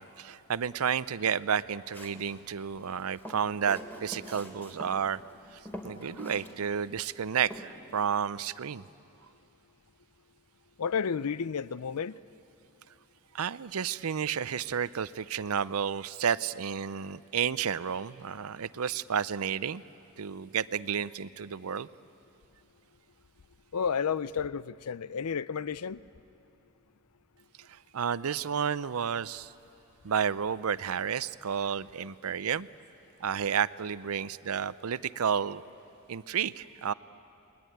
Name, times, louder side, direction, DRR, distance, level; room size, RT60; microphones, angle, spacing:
voice 1, 0.0-5.2 5.5-8.8 13.3-19.8 20.2-21.9 27.7-29.5 30.0-32.7 33.2-35.6 36.1-36.9, right 7 dB, 70° right, 0.6 m, -31 dB
Walk footsteps, 1.9-2.3 3.0-4.9 5.3-5.4 5.6-6.5 6.8-6.9 7.5-7.6, equal, 10° left, 2.8 m, -43 dB
voice 2, 10.8-12.2 23.7-26.0, left 6 dB, 80° left, 0.5 m, -31 dB
30.0 x 21.0 x 9.3 m
head